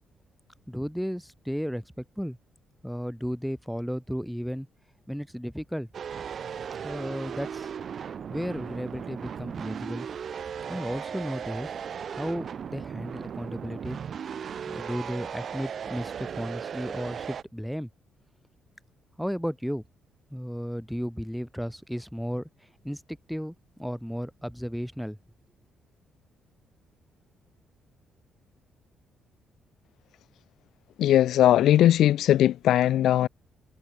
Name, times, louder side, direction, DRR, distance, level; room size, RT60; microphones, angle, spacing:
voice 1, 0.7-2.4 2.8-4.7 5.1-5.9 6.8-7.7 8.3-10.1 10.7-11.7 12.1-14.0 14.7-17.9 19.2-19.8 20.3-22.5 22.8-25.2, equal, ahead, 4.0 m, -34 dB
sound 1, 5.9-17.4, right 7 dB, 55° right, 1.4 m, -37 dB
voice 2, 31.0-33.3, left 12 dB, 80° left, 0.5 m, -19 dB
cardioid pair, 90°, 0 cm